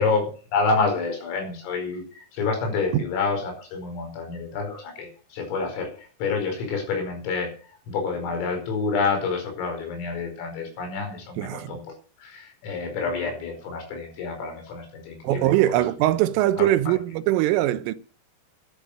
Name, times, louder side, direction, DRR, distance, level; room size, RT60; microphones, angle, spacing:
voice 1, 0.0-7.6 7.9-11.8 12.2-15.8 16.6-16.7, left 4 dB, 90° left, 7.6 m, -28 dB
voice 2, 11.4-11.8 15.2-17.9, right 14 dB, 85° right, 3.4 m, -22 dB
12.5 x 11.5 x 6.5 m
omnidirectional pair, 5.8 m